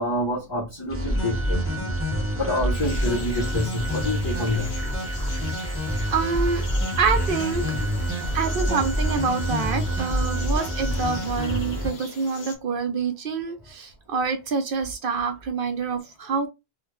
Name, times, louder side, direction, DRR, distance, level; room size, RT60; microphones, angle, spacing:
voice 1, 0.0-1.9 2.4-4.7 7.6-7.8, left 1 dB, 25° left, 0.7 m, -27 dB
sound 1, 0.9-11.9, equal, 15° right, 0.7 m, -27 dB
Organ, 1.1-11.7, right 4 dB, 50° left, 1.5 m, -40 dB
sound 2, 2.7-12.5, left 4 dB, 65° left, 1.0 m, -42 dB
voice 2, 6.1-6.6 7.0-7.7 8.3-16.5, right 5 dB, 60° right, 0.7 m, -26 dB
3.5 x 2.2 x 3.0 m
omnidirectional pair, 1.2 m